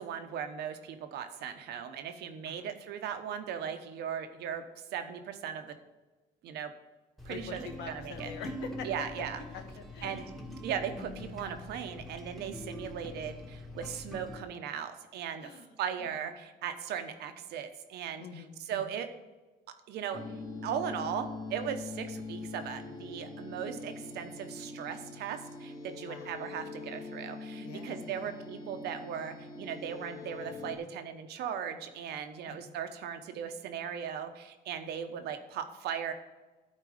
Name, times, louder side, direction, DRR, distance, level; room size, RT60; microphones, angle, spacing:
voice 1, 0.0-5.7 6.4-6.7 7.2-8.3 8.8-9.4 10.0-10.3 10.6-15.5 15.8-19.1 19.9-20.2 20.6-36.1, right 8 dB, 75° right, 8 dB, 1.0 m, -38 dB
sound 1, 7.2-14.4, left 1 dB, ahead, 1.3 m, -44 dB
voice 2, 7.3-10.2 15.4-16.1 18.2-18.9 26.0-26.4 27.6-28.4 32.5-32.7, left 6 dB, 85° left, 5 dB, 1.3 m, -45 dB
sound 2, 20.1-30.8, left 3 dB, 25° left, 1.3 m, -43 dB
11.5 x 4.6 x 5.0 m, 1.2 s
cardioid pair, 110°, 17 cm